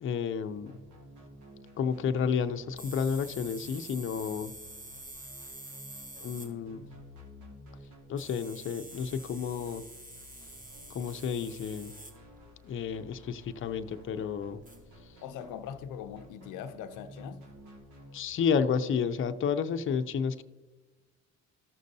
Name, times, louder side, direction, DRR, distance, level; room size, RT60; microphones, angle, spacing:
voice 1, 0.0-0.7 1.8-4.5 6.2-6.8 8.1-9.8 10.9-11.9 12.6-14.6 18.1-20.4, left 6 dB, 45° left, 0.5 m, -31 dB
sound 1, 0.5-18.2, left 1 dB, 80° right, 1.8 m, -53 dB
sound 2, 2.8-6.5 6.9-7.0 8.2-12.1 13.4-13.5 14.7-15.0, right 1 dB, 25° right, 1.5 m, -47 dB
voice 2, 15.2-17.4, left 8 dB, 85° left, 0.6 m, -41 dB
14.0 x 6.4 x 2.7 m
cardioid pair, 90°, 30 cm